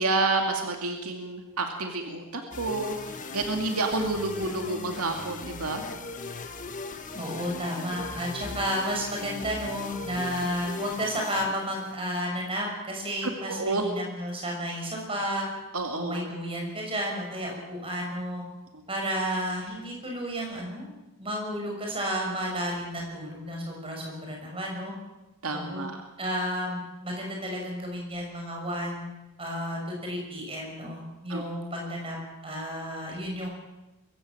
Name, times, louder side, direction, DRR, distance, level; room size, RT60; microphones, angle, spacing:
voice 1, 0.0-5.8 13.2-13.8 15.7-16.3 25.4-26.0 31.3-31.4, right 3 dB, 80° right, 3 dB, 2.3 m, -29 dB
sound 1, 2.5-12.2, left 3 dB, 35° left, 1.6 m, -39 dB
voice 2, 7.1-15.5 16.0-18.4 18.9-20.9 21.2-24.9 25.5-29.1 29.4-32.2 32.4-33.5, equal, 25° right, 0 dB, 6.3 m, -32 dB
23.0 x 15.5 x 7.7 m, 1.0 s
head